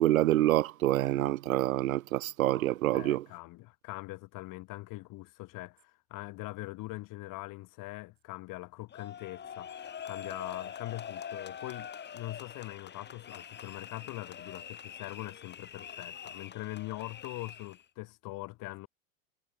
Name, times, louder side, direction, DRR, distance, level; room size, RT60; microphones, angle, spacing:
voice 1, 0.0-3.2, right 14 dB, 80° right, 1.1 m, -27 dB
voice 2, 2.9-18.9, left 20 dB, 50° left, 7.9 m, -42 dB
sound 1, 8.9-17.8, left 8 dB, 25° left, 2.8 m, -44 dB
hypercardioid pair, 100°, 40 cm